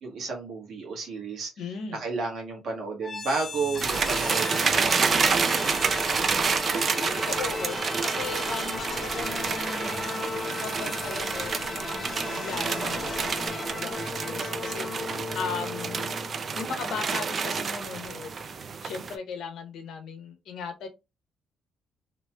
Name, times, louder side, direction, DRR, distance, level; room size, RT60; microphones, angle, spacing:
voice 1, 0.0-1.7 1.9-5.8, right 4 dB, 70° right, 1.4 m, -33 dB
voice 2, 1.6-2.0 6.7-10.2 10.5-14.9 15.3-16.1 16.5-18.3 18.8-20.9, left 5 dB, 75° left, 0.8 m, -37 dB
sound 1, 3.0-16.9, left 3 dB, 30° left, 0.8 m, -36 dB
sound 2, 3.8-19.2, right 5 dB, 45° right, 0.4 m, -29 dB
3.1 x 3.0 x 2.2 m
cardioid pair, 90°, 0 cm